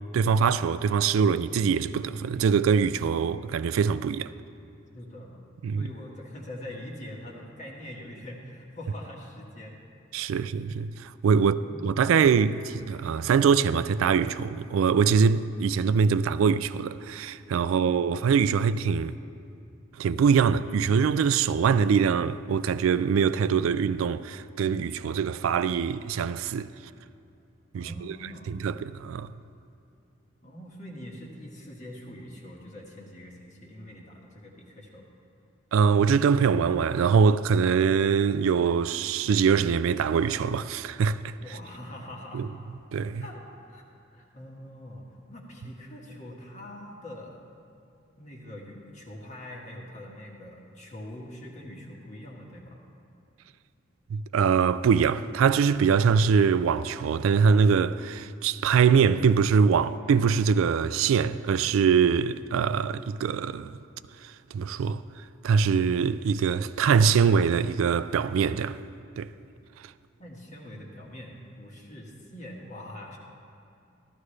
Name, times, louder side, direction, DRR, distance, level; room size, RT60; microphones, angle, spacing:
voice 1, 0.1-4.3 5.6-5.9 10.1-19.2 20.0-26.7 27.7-28.1 28.5-29.3 35.7-41.3 42.3-42.5 42.9-43.2 54.1-63.8 64.5-65.0 65.4-68.8 69.2-69.3, right 6 dB, 80° right, 0.3 m, -23 dB
voice 2, 4.9-5.4 5.7-9.8 10.2-10.5 11.4-12.0 27.7-28.5 30.4-35.1 41.4-42.5 43.2-43.8 44.1-47.4 48.2-52.8 70.2-73.2, left 1 dB, 35° left, 1.6 m, -43 dB
14.5 x 13.0 x 3.2 m
head